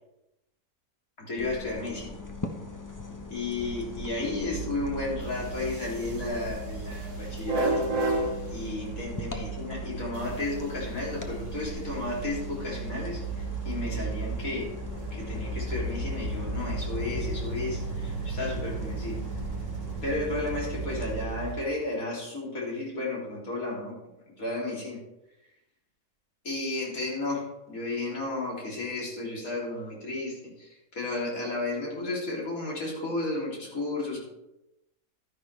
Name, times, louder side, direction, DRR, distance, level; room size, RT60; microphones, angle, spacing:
voice 1, 1.2-2.1 3.3-7.9 8.5-14.7 15.1-19.2 20.0-24.0 24.4-25.0 26.4-34.2, left 2 dB, 65° left, -4 dB, 3.6 m, -33 dB
sound 1, 1.4-21.3, left 3 dB, 15° left, 0.8 m, -41 dB
sound 2, 3.6-21.6, right 3 dB, 55° right, 1.7 m, -34 dB
12.0 x 10.0 x 3.4 m, 0.91 s
omnidirectional pair, 1.6 m